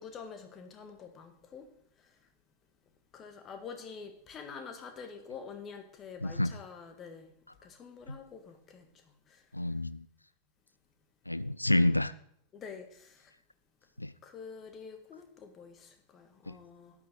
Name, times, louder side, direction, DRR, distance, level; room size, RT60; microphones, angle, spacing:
voice 1, 0.0-1.7 3.1-7.3 7.6-8.9 9.3-9.4 12.5-13.3 14.2-16.9, left 5 dB, 25° left, 6 dB, 1.7 m, -47 dB
voice 2, 6.2-6.6 8.1-8.2 9.5-10.1 11.3-12.1 14.0-14.1 16.5-16.6, left 1 dB, 85° left, 16 dB, 0.4 m, -29 dB
13.0 x 9.7 x 3.8 m, 0.66 s
figure-of-eight pair, 90°, 0 cm